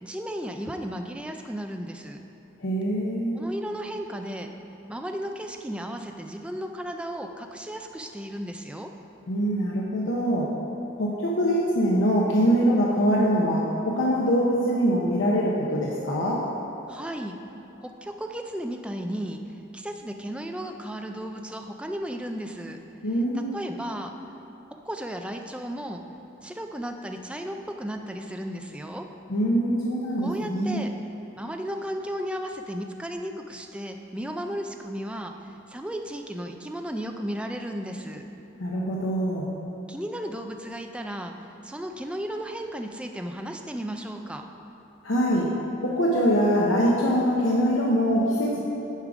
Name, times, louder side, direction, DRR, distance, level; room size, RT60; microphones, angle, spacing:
voice 1, 0.0-2.2 3.3-4.5 4.9-8.9 16.9-17.4 17.8-19.4 19.7-22.8 23.3-24.1 24.9-26.0 26.4-29.1 30.2-30.9 31.3-35.3 35.7-38.2 39.9-41.3 41.6-44.4, equal, 5° right, 4 dB, 0.4 m, -34 dB
voice 2, 2.6-3.4 9.3-10.5 11.0-16.4 23.0-23.6 29.3-30.8 38.6-39.5 45.0-45.5 45.8-48.6, equal, 90° left, -4 dB, 0.8 m, -23 dB
9.8 x 5.0 x 4.9 m, 2.9 s
head